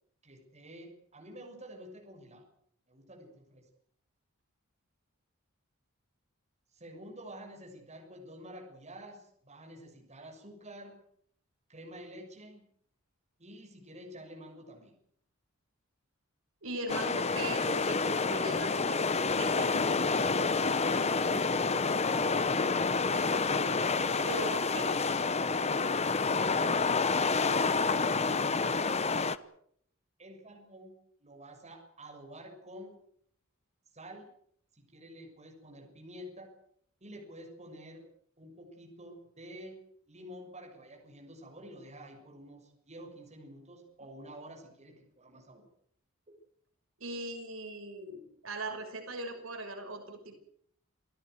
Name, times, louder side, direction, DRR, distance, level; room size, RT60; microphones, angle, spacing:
voice 1, 0.2-2.5 2.9-3.6 6.7-11.0 11.7-12.6 13.4-14.9 20.1-24.5 26.6-27.0 27.6-29.2 30.2-30.9 31.2-32.9 33.9-34.3 34.9-36.5 37.0-38.1 38.4-39.8 40.1-45.7 46.3-46.4, equal, 30° right, 2 dB, 6.6 m, -49 dB
voice 2, 16.6-20.0 24.2-25.0 44.0-44.1 47.0-50.4, right 1 dB, 65° right, 5 dB, 5.9 m, -40 dB
sound 1, 16.9-29.4, left 4 dB, 30° left, 1.0 m, -28 dB
28.5 x 17.0 x 8.0 m, 0.67 s
head